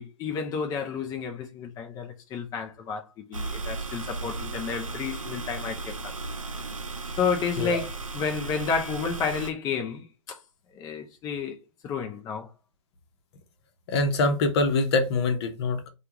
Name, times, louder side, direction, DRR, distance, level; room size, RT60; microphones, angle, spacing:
voice 1, 0.0-6.1 7.2-10.4 10.7-11.6 11.8-12.5, left 6 dB, 20° left, 0.5 m, -31 dB
sound 1, 3.3-9.5, right 3 dB, 90° right, 0.6 m, -35 dB
voice 2, 13.9-15.9, left 3 dB, 55° left, 0.9 m, -24 dB
3.4 x 2.3 x 2.9 m
figure-of-eight pair, 105°, 17 cm